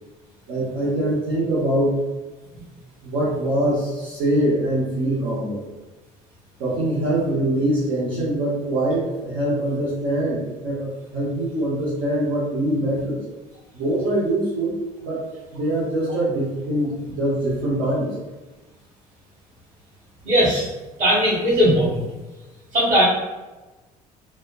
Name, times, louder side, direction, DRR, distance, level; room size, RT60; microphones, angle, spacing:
voice 1, 0.5-2.0 3.0-5.6 6.6-13.2 13.7-15.3 15.5-18.2, right 1 dB, 60° right, -9 dB, 0.9 m, -23 dB
voice 2, 20.2-20.7 21.0-22.0 22.7-23.0, equal, 40° right, -8 dB, 1.2 m, -18 dB
3.1 x 2.1 x 2.4 m, 1.2 s
figure-of-eight pair, 55°, 20 cm